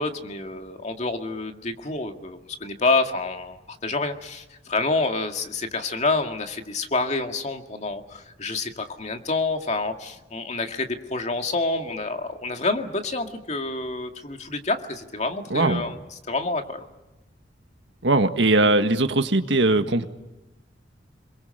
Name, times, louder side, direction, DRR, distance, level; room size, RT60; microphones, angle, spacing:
voice 1, 0.0-16.0 16.3-16.9, left 3 dB, 40° left, 5 dB, 2.0 m, -28 dB
voice 2, 15.5-15.8 18.0-20.1, right 2 dB, 70° right, 7 dB, 1.7 m, -20 dB
30.0 x 22.0 x 6.6 m, 1.0 s
head